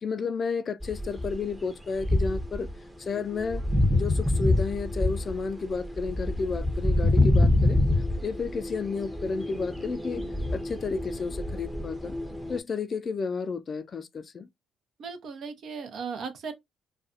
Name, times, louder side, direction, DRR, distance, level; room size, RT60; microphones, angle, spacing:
voice 1, 0.0-2.7 3.0-3.6 3.9-7.8 8.2-10.2 10.5-12.1 12.5-14.5, left 4 dB, 45° left, 0.4 m, -32 dB
sound 1, 0.8-1.6 2.0-2.7 3.2-12.6, left 1 dB, 10° right, 0.7 m, -26 dB
voice 2, 15.0-16.5, right 5 dB, 60° right, 0.7 m, -36 dB
2.5 x 2.3 x 2.4 m
supercardioid pair, 60°, 0 cm